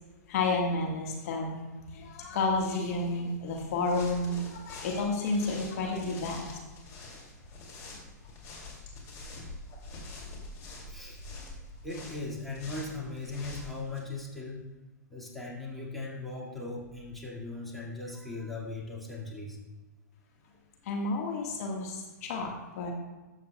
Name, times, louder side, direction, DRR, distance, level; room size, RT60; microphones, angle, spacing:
voice 1, 0.3-1.6 1.9-6.6 20.8-22.9, left 3 dB, 55° left, 1 dB, 1.5 m, -31 dB
sound 1, 3.5-14.0, left 2 dB, 35° left, 2.4 m, -46 dB
voice 2, 10.9-11.2 11.8-14.6 15.1-19.6, left 3 dB, ahead, -5 dB, 1.9 m, -38 dB
12.5 x 7.5 x 2.2 m, 1.1 s
hypercardioid pair, 115°, 10 cm